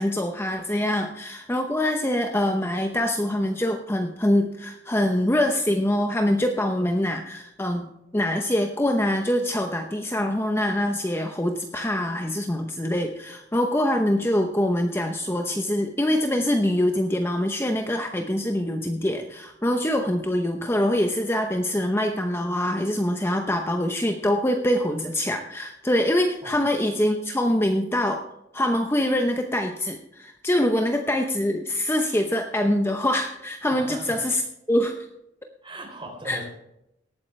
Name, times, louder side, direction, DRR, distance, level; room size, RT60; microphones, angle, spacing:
voice 1, 0.0-28.2 28.5-34.4 34.7-35.1 36.3-36.4, left 1 dB, 15° left, 4 dB, 0.8 m, -24 dB
voice 2, 33.7-34.3 35.6-36.4, right 1 dB, 25° right, 1 dB, 3.6 m, -38 dB
18.5 x 8.9 x 3.3 m, 0.84 s
head